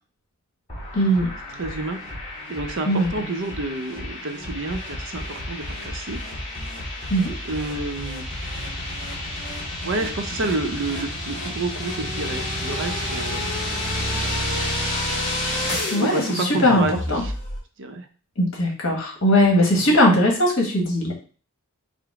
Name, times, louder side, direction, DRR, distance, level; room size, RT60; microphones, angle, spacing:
sound 1, 0.7-17.6, left 1 dB, 30° left, 2.0 m, -30 dB
voice 1, 0.9-1.3 2.9-3.1 7.1-7.3 15.9-16.8 17.1-17.2 18.4-21.1, equal, 60° left, 0 dB, 1.4 m, -19 dB
voice 2, 1.5-2.0 2.5-6.2 7.5-8.2 9.8-13.5 14.3-14.6 15.9-17.3 17.8-18.1 19.7-20.0, right 2 dB, 60° right, 6 dB, 0.6 m, -29 dB
5.0 x 2.0 x 4.7 m, 0.38 s
head